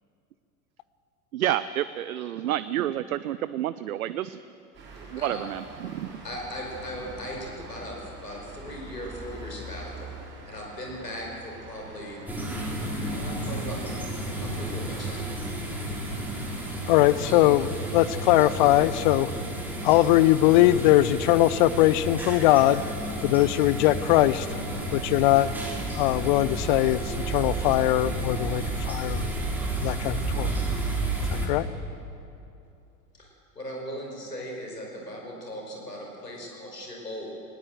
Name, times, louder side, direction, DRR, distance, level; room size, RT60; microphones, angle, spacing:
voice 1, 1.3-4.4 5.2-6.2, right 12 dB, 65° right, 15 dB, 0.6 m, -29 dB
sound 1, 4.7-19.0, right 2 dB, 25° right, 5.9 m, -45 dB
voice 2, 6.2-10.1 10.4-12.2 13.1-13.8 14.4-15.3 33.1-37.4, equal, 85° left, -1 dB, 5.2 m, -38 dB
sound 2, 12.3-31.5, right 2 dB, 5° right, 4.4 m, -31 dB
voice 3, 16.9-19.3 19.8-22.8 23.2-24.5 24.9-25.5 25.9-29.3 29.8-30.5 31.4-31.6, left 15 dB, 35° left, 17 dB, 0.4 m, -21 dB
19.5 x 18.0 x 7.9 m, 2.7 s
figure-of-eight pair, 85°, 47 cm